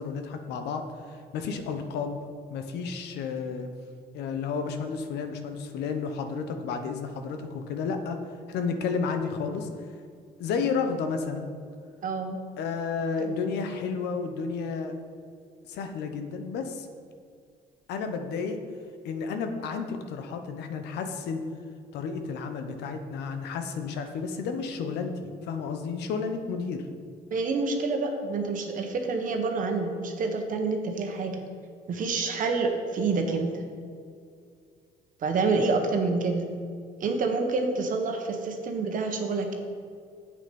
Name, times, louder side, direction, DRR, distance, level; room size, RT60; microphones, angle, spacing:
voice 1, 0.0-2.2 2.5-3.7 4.1-8.2 8.5-9.7 10.4-11.5 12.6-15.0 15.7-16.9 17.9-18.6 19.0-21.5 21.9-26.9, left 5 dB, 80° left, 6 dB, 1.1 m, -32 dB
voice 2, 12.0-12.4 13.2-13.4 27.3-31.4 31.9-33.5 35.2-36.5 37.0-39.5, right 4 dB, 50° right, 4 dB, 1.4 m, -27 dB
8.7 x 8.4 x 5.4 m, 2.3 s
cardioid pair, 110°, 17 cm